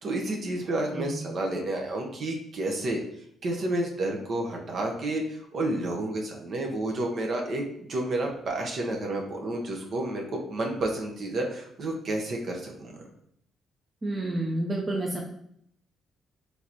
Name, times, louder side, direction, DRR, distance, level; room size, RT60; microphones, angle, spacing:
voice 1, 0.0-3.0 3.4-10.2 10.5-13.0, right 1 dB, 55° right, 1 dB, 0.9 m, -30 dB
voice 2, 0.9-1.3 14.0-15.2, right 1 dB, 25° right, -1 dB, 0.7 m, -30 dB
4.6 x 3.4 x 2.9 m, 0.70 s
cardioid pair, 90°, 0 cm